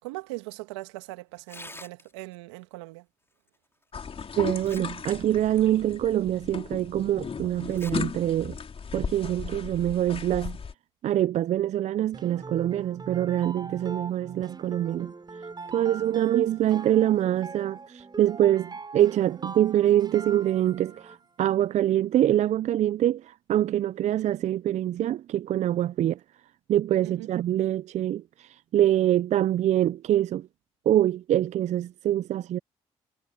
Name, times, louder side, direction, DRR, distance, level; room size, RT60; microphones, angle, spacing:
voice 1, 0.0-3.0 27.0-27.3, right 21 dB, 85° right, 2.4 m, -40 dB
Tearing, 1.4-2.4 3.8-3.9 4.4-5.1 5.5-5.6 6.3-6.4 7.6-7.9 8.3-8.4 9.3-9.5, left 2 dB, 15° left, 5.0 m, -46 dB
sound 1, 3.9-10.7, left 6 dB, 40° left, 4.1 m, -36 dB
voice 2, 4.4-8.6 8.9-10.6 11.0-15.1 15.7-26.2 26.7-30.5 30.9-32.6, right 12 dB, 55° right, 0.4 m, -25 dB
sound 2, 12.1-21.3, right 4 dB, 30° right, 7.3 m, -41 dB
hypercardioid pair, 50°, 14 cm